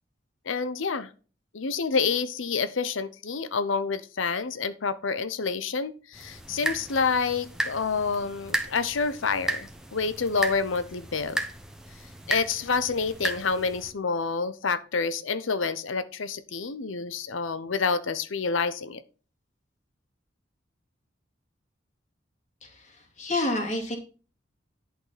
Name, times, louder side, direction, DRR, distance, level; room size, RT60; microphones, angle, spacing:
voice 1, 0.5-1.1 1.5-11.4 12.3-19.0, left 5 dB, 85° left, 13 dB, 0.7 m, -28 dB
sound 1, 6.1-13.9, right 1 dB, 5° right, 1.1 m, -34 dB
voice 2, 22.6-24.0, left 1 dB, 35° left, 2 dB, 2.6 m, -29 dB
11.0 x 6.5 x 4.1 m, 0.36 s
head